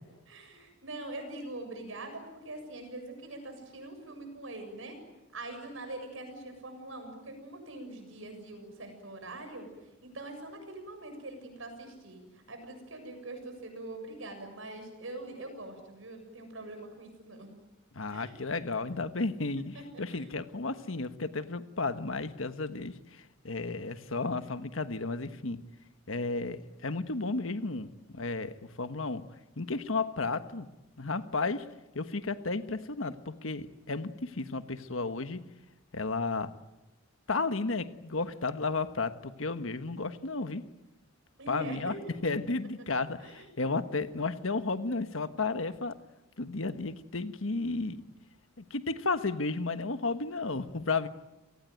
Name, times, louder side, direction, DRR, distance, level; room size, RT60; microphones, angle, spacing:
voice 1, 0.3-5.0 5.3-9.7 10.0-12.2 12.5-17.5 18.1-18.3 19.7-20.2 41.4-42.1 43.2-43.7, right 2 dB, 75° right, 6 dB, 7.5 m, -43 dB
voice 2, 17.9-25.6 26.1-29.3 29.6-30.7 31.0-31.7 31.9-35.4 35.9-36.5 37.3-40.6 41.5-41.9 42.2-46.0 46.4-48.0 48.6-51.1, left 3 dB, 80° left, 10 dB, 1.4 m, -33 dB
29.5 x 19.0 x 9.3 m, 1.0 s
head